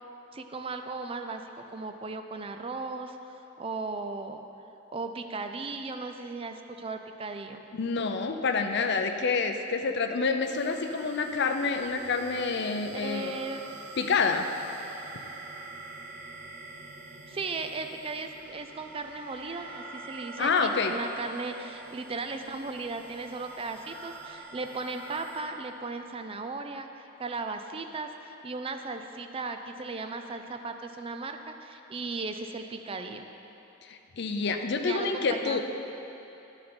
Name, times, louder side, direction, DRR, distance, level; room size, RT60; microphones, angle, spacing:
voice 1, 0.3-3.2 3.6-4.4 4.9-7.6 12.9-13.6 17.1-33.3 34.8-35.6, right 3 dB, 30° right, 6 dB, 0.4 m, -36 dB
voice 2, 7.7-13.4 14.0-14.5 20.4-20.9 33.9-35.6, left 4 dB, 55° left, 6 dB, 0.5 m, -28 dB
sound 1, 10.4-25.4, right 3 dB, 70° right, 1.5 m, -46 dB
11.5 x 6.6 x 4.4 m, 3.0 s
head